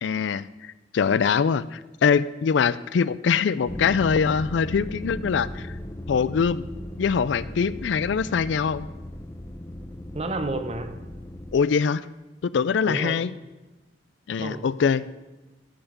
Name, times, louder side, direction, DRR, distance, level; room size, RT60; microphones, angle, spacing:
voice 1, 0.0-5.7 6.1-6.6 7.0-8.9 11.5-12.0 12.4-13.3 14.3-15.0, left 6 dB, 65° left, 0.4 m, -23 dB
sound 1, 3.7-11.6, left 1 dB, 15° left, 0.6 m, -37 dB
voice 2, 10.1-11.0 12.9-13.3 14.4-14.7, right 2 dB, 30° right, 0.8 m, -31 dB
14.0 x 5.8 x 6.7 m
head